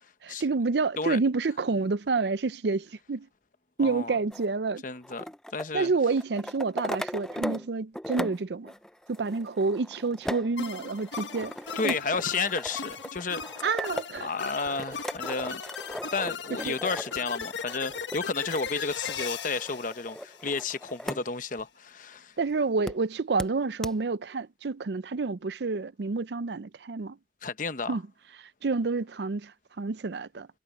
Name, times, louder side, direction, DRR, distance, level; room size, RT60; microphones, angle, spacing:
voice 1, 0.2-3.3 3.8-4.8 5.7-8.7 9.1-11.5 11.8-11.9 13.6-14.3 16.7-16.8 22.4-27.2 27.9-28.0 28.6-29.5 29.8-30.5, right 4 dB, 65° right, 0.5 m, -28 dB
voice 2, 3.8-4.2 4.8-5.9 11.7-13.4 14.2-15.6 16.1-22.3 27.4-28.0, left 4 dB, 45° left, 0.9 m, -32 dB
sound 1, 4.3-7.7 7.9-21.2 21.6-21.7 22.9-23.0 23.4-23.5 23.8-23.9, equal, 5° left, 0.4 m, -38 dB
sound 2, 10.6-21.0, left 6 dB, 85° left, 1.3 m, -38 dB
sound 3, 11.4-19.3, right 2 dB, 50° right, 4.9 m, -56 dB
head